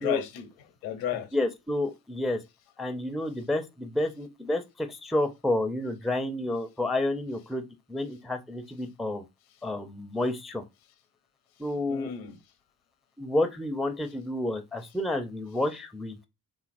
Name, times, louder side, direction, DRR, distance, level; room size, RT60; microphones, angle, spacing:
voice 1, 0.0-1.3 11.6-12.4, left 10 dB, 80° left, 0.7 m, -34 dB
voice 2, 1.3-2.4 2.8-7.6 7.9-9.2 9.6-10.6 11.6-12.1 13.2-16.3, left 1 dB, ahead, 0.4 m, -30 dB
2.8 x 2.4 x 2.5 m
hypercardioid pair, 50°, 45 cm